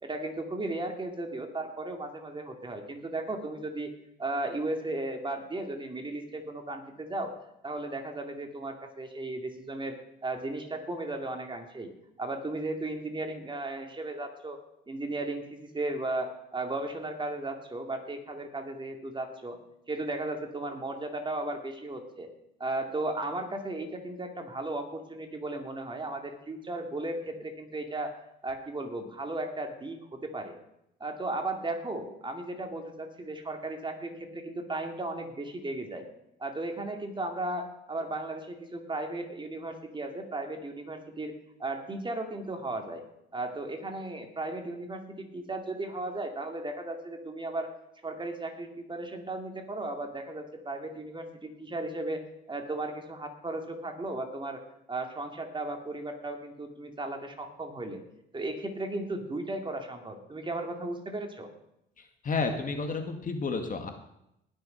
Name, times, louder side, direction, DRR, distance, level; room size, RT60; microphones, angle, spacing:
voice 1, 0.0-3.9 4.2-7.4 7.6-10.0 10.2-11.9 12.2-14.6 14.9-19.6 19.9-22.3 22.6-28.2 28.4-30.5 31.0-36.0 36.4-41.3 41.6-43.0 43.3-47.7 48.0-52.2 52.5-54.6 54.9-58.0 58.3-61.5, right 2 dB, 25° right, 4 dB, 2.4 m, -35 dB
voice 2, 62.2-63.9, left 4 dB, 40° left, 5 dB, 2.0 m, -31 dB
19.0 x 6.5 x 5.7 m, 0.82 s
supercardioid pair, 75°, 20 cm